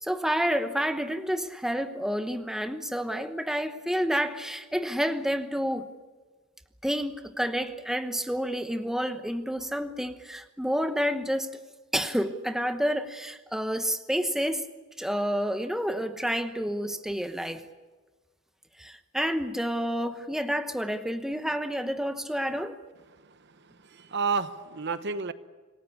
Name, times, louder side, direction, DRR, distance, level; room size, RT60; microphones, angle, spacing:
voice 1, 0.0-5.9 6.8-11.6 11.9-14.7 15.0-17.6 18.8-22.8, equal, ahead, 1.0 m, -29 dB
voice 2, 23.2-25.3, right 5 dB, 55° right, 1.0 m, -31 dB
27.5 x 18.0 x 8.4 m
head